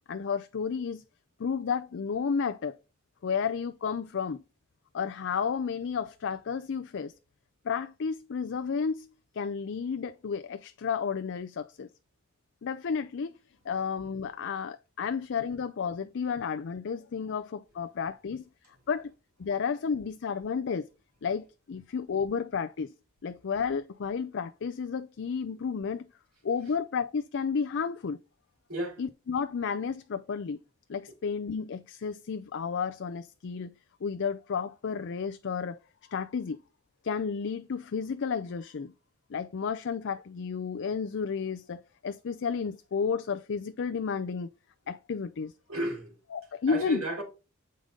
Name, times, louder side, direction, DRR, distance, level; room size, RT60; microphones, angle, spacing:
voice 1, 0.1-1.0 1.4-2.8 3.2-4.4 4.9-7.1 7.6-9.1 9.3-11.9 12.6-13.4 13.6-18.4 18.9-19.1 19.4-20.9 21.2-22.9 23.2-26.1 26.4-28.2 29.0-30.6 30.9-33.7 34.0-35.8 36.1-36.6 37.0-38.9 39.3-44.5 44.9-45.5 46.3-47.0, left 6 dB, 55° left, 0.4 m, -32 dB
voice 2, 28.7-29.0 45.7-46.1 46.7-47.2, right 1 dB, 75° right, 3.6 m, -33 dB
7.7 x 5.1 x 3.7 m
head